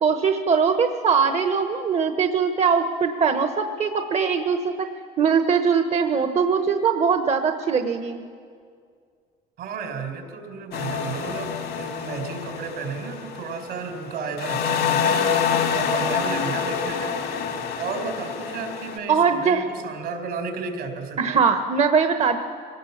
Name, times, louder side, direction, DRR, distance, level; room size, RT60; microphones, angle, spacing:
voice 1, 0.0-4.9 5.2-8.2 19.1-19.6 21.2-22.4, right 6 dB, 40° right, 7 dB, 1.1 m, -21 dB
voice 2, 9.6-15.2 15.7-17.1 17.8-21.4, right 5 dB, 75° right, 4 dB, 4.1 m, -33 dB
sound 1, 10.7-14.1 14.4-19.0, left 7 dB, 85° left, 2.7 m, -26 dB
25.5 x 18.0 x 7.2 m, 2.2 s
cardioid pair, 110°, 17 cm